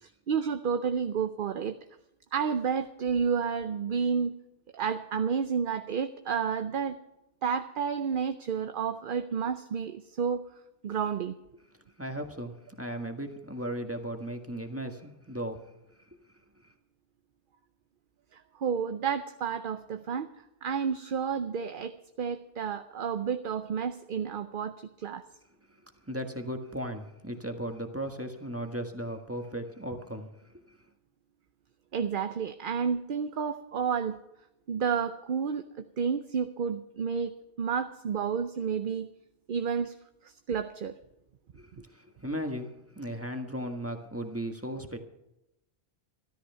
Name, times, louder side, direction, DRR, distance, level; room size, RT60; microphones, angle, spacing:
voice 1, 0.0-1.8 2.3-4.3 4.7-7.0 7.4-10.4 10.8-11.3 18.3-20.3 20.6-25.2 31.9-34.2 34.7-39.1 39.5-40.0 40.2-40.9, right 6 dB, 55° right, 9 dB, 0.8 m, -31 dB
voice 2, 12.0-15.6 26.1-30.3 30.7-30.8 41.6-45.0, right 1 dB, 15° right, 4 dB, 1.5 m, -36 dB
13.5 x 13.0 x 5.6 m, 0.88 s
omnidirectional pair, 1.1 m